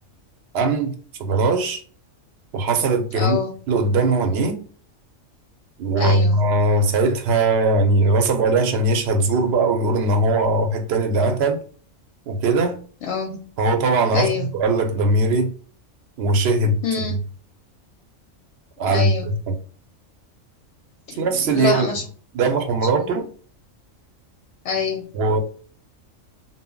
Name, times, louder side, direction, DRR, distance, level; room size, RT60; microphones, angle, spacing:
voice 1, 0.5-0.9 1.2-1.8 2.5-3.4 3.7-4.6 5.8-11.6 12.3-12.8 13.6-15.5 16.2-16.8 18.8-19.1 19.5-19.6 21.2-21.9 22.3-23.2 25.1-25.4, right 2 dB, 65° right, 0.7 m, -20 dB
voice 2, 3.1-3.5 6.0-6.4 13.1-13.4 14.1-14.5 16.8-17.2 18.9-19.3 21.1-22.0 23.0-23.2 24.6-25.1, left 6 dB, 65° left, 0.7 m, -26 dB
2.1 x 2.0 x 3.5 m
omnidirectional pair, 1.4 m